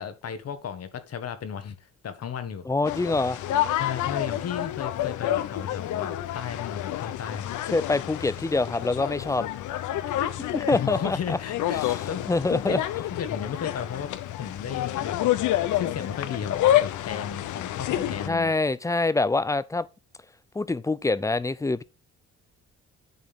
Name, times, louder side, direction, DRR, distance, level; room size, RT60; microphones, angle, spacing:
voice 1, 0.0-2.7 3.8-7.5 10.7-12.8 13.1-14.1 14.4-15.2 15.7-18.5, left 7 dB, 55° left, 1.2 m, -34 dB
voice 2, 2.7-3.4 7.7-9.5 10.2-11.4 11.8-12.8 18.3-19.9 20.5-21.8, left 3 dB, 10° left, 0.4 m, -25 dB
sound 1, 2.8-18.3, left 13 dB, 75° left, 0.7 m, -29 dB
10.5 x 4.2 x 3.5 m
cardioid pair, 90°, 30 cm